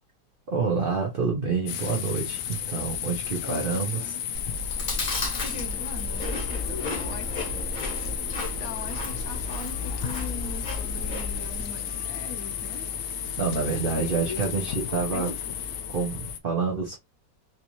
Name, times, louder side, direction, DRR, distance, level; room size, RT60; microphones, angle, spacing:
voice 1, 0.5-4.0 5.0-5.1 13.4-15.3 15.9-17.0, right 5 dB, 80° right, 0.5 m, -27 dB
sound 1, 1.7-16.4, left 10 dB, 85° left, 0.7 m, -34 dB
sound 2, 2.7-2.8 3.3-3.6 4.0-4.1 4.4-4.5 4.7-16.3, left 2 dB, 5° left, 0.7 m, -41 dB
voice 2, 3.4-4.2 5.4-12.9 14.0-15.6, left 5 dB, 65° left, 1.0 m, -41 dB
Chewing mastication, 4.3-11.6, left 1 dB, 35° left, 0.8 m, -34 dB
3.3 x 2.7 x 2.9 m
omnidirectional pair, 2.0 m